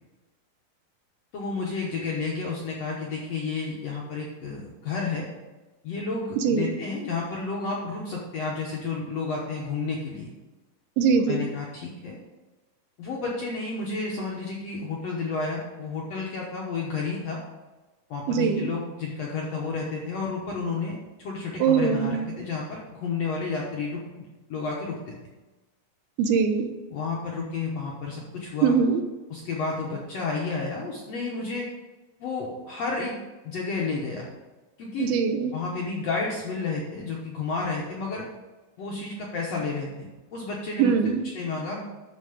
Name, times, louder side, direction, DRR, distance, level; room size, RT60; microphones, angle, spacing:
voice 1, 1.3-5.3 5.8-10.3 11.2-12.2 13.0-17.4 18.1-25.1 26.9-28.8 29.3-31.6 32.2-33.2 33.4-34.3 34.8-35.1 35.5-38.2 38.8-40.9 41.3-41.8, left 4 dB, 65° left, -3 dB, 1.6 m, -31 dB
voice 2, 6.4-6.7 11.0-11.5 18.3-18.7 21.6-22.3 26.2-26.7 28.6-29.0 35.0-35.6 40.8-41.2, right 6 dB, 90° right, 7 dB, 2.6 m, -22 dB
12.5 x 4.6 x 5.1 m, 1.2 s
omnidirectional pair, 4.4 m